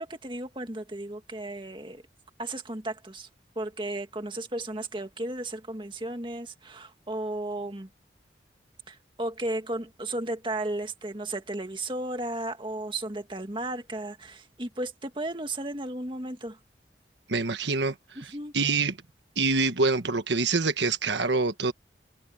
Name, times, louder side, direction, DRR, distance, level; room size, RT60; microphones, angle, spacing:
voice 1, 0.0-2.0 2.4-3.3 3.6-7.9 8.9-16.6 18.2-18.5, right 1 dB, 25° right, 2.0 m, -34 dB
voice 2, 17.3-19.0 19.4-21.7, right 3 dB, 80° right, 1.4 m, -26 dB
head